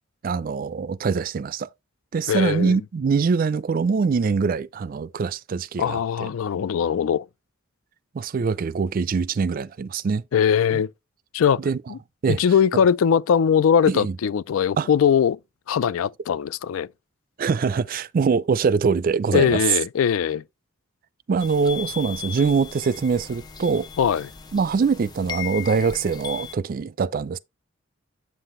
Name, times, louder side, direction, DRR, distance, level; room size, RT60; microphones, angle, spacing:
voice 1, 0.2-1.7 2.1-6.3 8.1-10.2 10.7-10.8 11.6-11.8 12.2-12.4 13.9-14.2 14.8-14.9 17.4-19.6 21.3-23.9 24.5-27.4, right 5 dB, 45° right, 0.4 m, -23 dB
voice 2, 2.3-2.8 5.8-7.3 10.3-10.9 11.3-11.6 11.9-12.0 12.3-15.4 15.7-16.9 19.3-20.4 24.0-24.3, left 7 dB, 90° left, 0.4 m, -21 dB
sound 1, 21.4-26.5, left 8 dB, 20° left, 0.6 m, -37 dB
7.8 x 5.7 x 3.1 m
head